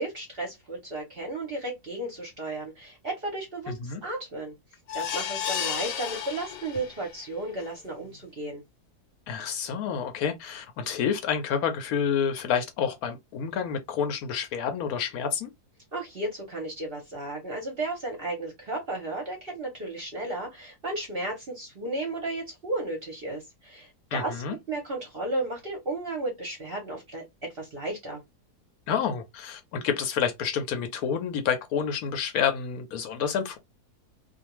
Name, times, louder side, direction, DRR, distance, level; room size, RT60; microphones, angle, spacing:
voice 1, 0.0-4.5 4.9-8.6 15.9-27.2 27.5-28.2, right 2 dB, 50° right, 0.8 m, -34 dB
voice 2, 3.7-4.0 9.3-15.5 24.1-24.6 28.9-33.6, left 7 dB, 70° left, 1.0 m, -29 dB
sound 1, 4.9-7.1 7.6-7.7 8.1-8.2, left 9 dB, 90° left, 1.3 m, -32 dB
2.5 x 2.2 x 2.9 m
omnidirectional pair, 1.7 m